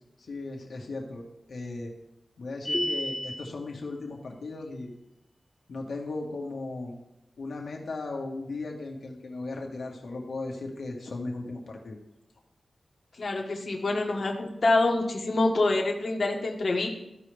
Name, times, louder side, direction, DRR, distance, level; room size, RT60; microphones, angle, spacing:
voice 1, 0.3-1.9 2.4-4.9 5.7-7.0 7.4-12.0, left 3 dB, 85° left, 0 dB, 1.6 m, -37 dB
sound 1, 2.6-3.5, left 1 dB, 20° left, 0.8 m, -30 dB
voice 2, 13.2-16.9, left 2 dB, 65° left, 1 dB, 1.3 m, -26 dB
14.5 x 5.0 x 3.4 m, 0.88 s
cardioid pair, 65°, 0 cm